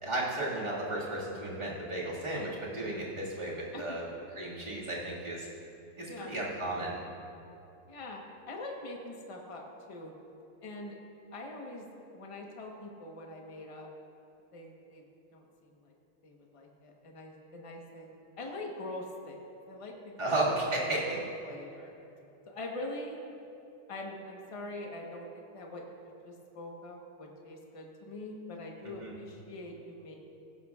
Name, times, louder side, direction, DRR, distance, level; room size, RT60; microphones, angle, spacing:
voice 1, 0.0-4.0 4.4-5.5 6.0-7.0 20.2-21.2 28.8-29.2, right 2 dB, 20° right, -6 dB, 1.9 m, -34 dB
voice 2, 6.1-6.4 7.9-8.2 8.5-9.6 9.9-10.1 10.6-11.0 11.3-11.8 12.1-13.9 14.5-15.0 15.3-15.4 15.9-16.0 16.2-18.1 18.4-19.4 19.7-20.2 20.9-21.9 22.5-23.1 23.9-30.1, left 2 dB, 35° left, 0 dB, 0.5 m, -43 dB
16.0 x 12.0 x 2.4 m, 2.8 s
omnidirectional pair, 2.4 m